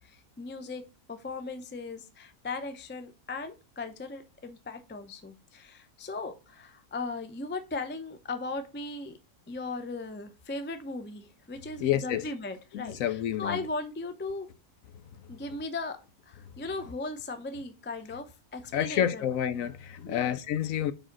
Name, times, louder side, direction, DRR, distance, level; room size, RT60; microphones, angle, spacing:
voice 1, 0.0-0.8 1.1-9.2 9.5-14.5 15.3-16.0 16.2-19.2 20.0-20.4, left 3 dB, 15° left, 0.3 m, -38 dB
voice 2, 11.8-12.2 12.7-13.6 18.7-20.9, left 10 dB, 70° left, 0.9 m, -29 dB
4.9 x 4.9 x 5.9 m
omnidirectional pair, 1.6 m